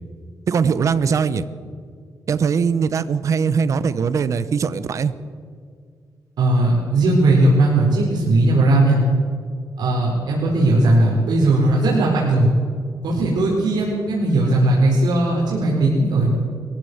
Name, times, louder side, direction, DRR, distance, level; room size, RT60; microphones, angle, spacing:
voice 1, 0.5-1.4 2.3-5.1, right 6 dB, 45° right, 14 dB, 0.9 m, -20 dB
voice 2, 6.4-9.0 9.8-12.5 13.0-16.3, right 2 dB, 75° right, -4 dB, 4.2 m, -17 dB
22.0 x 14.5 x 8.0 m, 2.1 s
wide cardioid pair, 170°, 7 cm